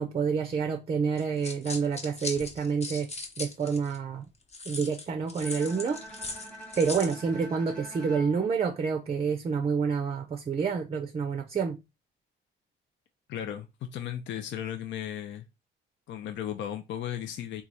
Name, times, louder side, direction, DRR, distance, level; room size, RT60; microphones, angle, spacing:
voice 1, 0.0-3.1 3.4-4.3 4.7-6.0 6.8-11.8, right 5 dB, 30° right, 0.5 m, -28 dB
sound 1, 1.2-4.0 4.5-7.2, left 3 dB, 30° left, 0.9 m, -39 dB
Bowed string instrument, 5.4-9.6, equal, 5° left, 1.1 m, -47 dB
voice 2, 13.3-13.7 13.9-15.4 16.1-17.6, left 10 dB, 65° left, 0.5 m, -35 dB
3.0 x 2.3 x 3.9 m
cardioid pair, 90°, 20 cm